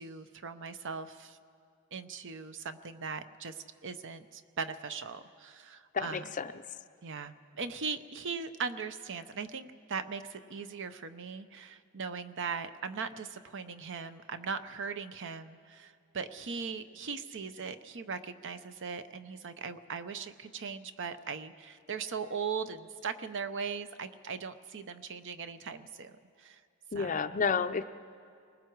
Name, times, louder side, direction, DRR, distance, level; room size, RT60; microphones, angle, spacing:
voice 1, 0.0-1.4 1.9-6.3 7.0-26.6 26.9-27.3, right 5 dB, 55° right, 11 dB, 0.7 m, -39 dB
voice 2, 6.1-6.5 26.9-27.8, left 5 dB, 35° left, 10 dB, 0.5 m, -30 dB
29.0 x 20.0 x 4.7 m, 2.3 s
head